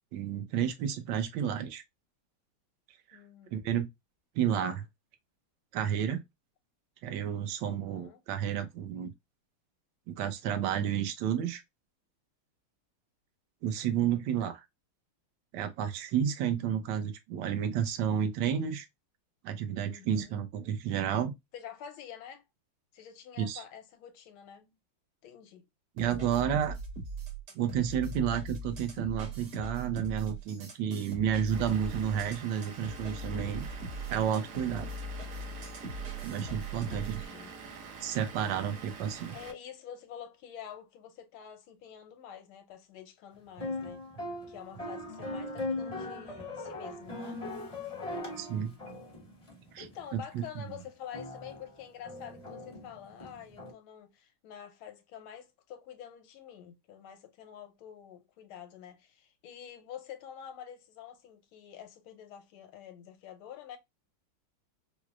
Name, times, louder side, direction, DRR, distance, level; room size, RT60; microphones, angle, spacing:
voice 1, 0.1-1.8 3.5-3.9 4.3-4.9 5.7-6.2 7.0-9.1 10.1-11.6 13.6-14.6 15.5-18.9 19.4-21.3 23.4-23.6 26.0-26.8 27.5-33.7 34.1-34.9 36.2-37.2 38.0-39.4 48.4-48.7 49.7-49.8 50.1-50.6, right 9 dB, 70° right, 1.3 m, -31 dB
voice 2, 3.1-3.5 7.7-8.2 19.8-20.4 21.5-22.4 22.9-24.8 25.2-25.7 26.0-26.2 36.9-37.6 39.3-44.1 44.5-47.4 49.8-63.8, left 9 dB, 80° left, 1.6 m, -47 dB
sound 1, 26.0-37.3, right 1 dB, 50° right, 1.3 m, -40 dB
Vehicle / Engine, 31.5-39.5, right 5 dB, 85° right, 1.8 m, -46 dB
sound 2, 43.6-50.0 50.5-50.6 51.1-53.7, left 2 dB, 25° left, 0.7 m, -39 dB
4.7 x 2.0 x 2.3 m
omnidirectional pair, 2.3 m